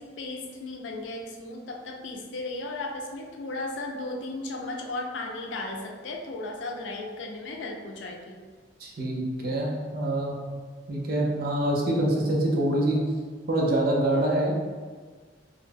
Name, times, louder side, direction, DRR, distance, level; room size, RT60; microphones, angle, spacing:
voice 1, 0.0-8.4, left 2 dB, 85° left, 1 dB, 0.4 m, -35 dB
voice 2, 8.8-10.3 10.9-13.0 13.5-14.5, right 1 dB, 55° right, -2 dB, 0.5 m, -25 dB
2.4 x 2.1 x 3.3 m, 1.5 s
head